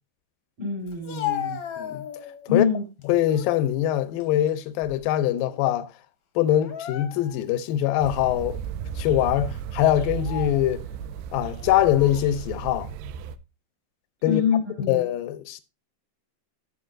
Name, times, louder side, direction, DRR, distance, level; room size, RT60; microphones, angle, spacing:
voice 1, 0.6-1.6 2.5-2.8 14.2-15.0, left 6 dB, 65° right, 5.9 m, -25 dB
Speech, 0.9-2.5 3.0-3.6 4.0-5.2 5.5-5.7 6.5-7.5 8.1-8.2 9.0-9.2 10.0-10.7 11.6-12.3, left 11 dB, 65° left, 1.5 m, -36 dB
voice 2, 3.1-5.9 6.4-8.6 9.0-10.8 11.3-12.9 14.2-14.4 14.9-15.6, left 12 dB, 85° left, 2.3 m, -23 dB
sound 1, 8.0-13.4, right 9 dB, 85° right, 2.3 m, -34 dB
14.0 x 5.5 x 2.5 m
omnidirectional pair, 4.1 m